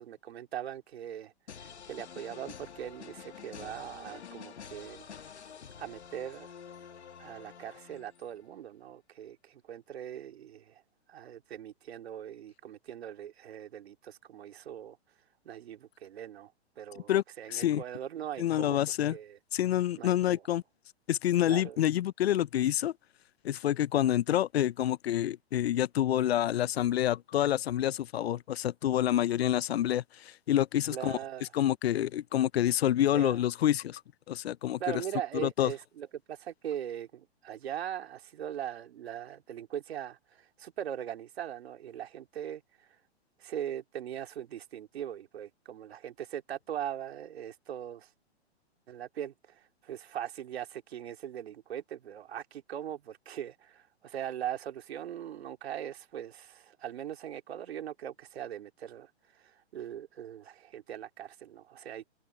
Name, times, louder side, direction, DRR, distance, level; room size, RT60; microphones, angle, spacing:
voice 1, 0.0-5.1 5.8-6.5 7.2-10.8 11.1-15.0 15.4-16.5 16.8-18.8 19.1-19.4 20.0-20.4 21.5-21.8 30.9-31.5 33.1-33.4 34.8-43.0 43.4-48.1 48.9-62.1, right 10 dB, 70° right, 3.2 m, -40 dB
sound 1, 1.5-8.4, left 7 dB, 85° left, 2.3 m, -48 dB
voice 2, 17.5-17.8 18.4-19.2 19.5-20.6 21.1-22.9 23.4-31.2 31.5-34.0 34.3-34.8 35.3-35.7, left 12 dB, 70° left, 0.7 m, -27 dB
hypercardioid pair, 130°, 33 cm